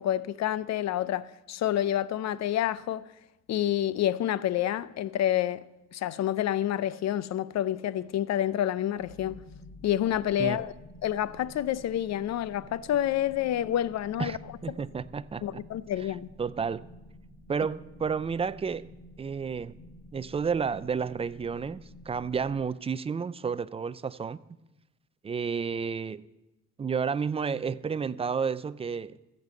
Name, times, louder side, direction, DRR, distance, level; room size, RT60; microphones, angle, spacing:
voice 1, 0.0-3.0 3.5-5.6 5.9-9.4 9.8-10.7 11.0-14.4 15.4-16.3, left 11 dB, 60° left, 0.5 m, -28 dB
sound 1, 9.0-22.7, left 1 dB, 35° left, 4.3 m, -51 dB
voice 2, 14.6-15.6 16.4-16.8 17.5-18.9 19.2-19.8 20.1-24.4 25.2-26.3 26.8-29.2, right 6 dB, 20° right, 0.4 m, -31 dB
14.0 x 5.4 x 7.6 m
cardioid pair, 90°, 30 cm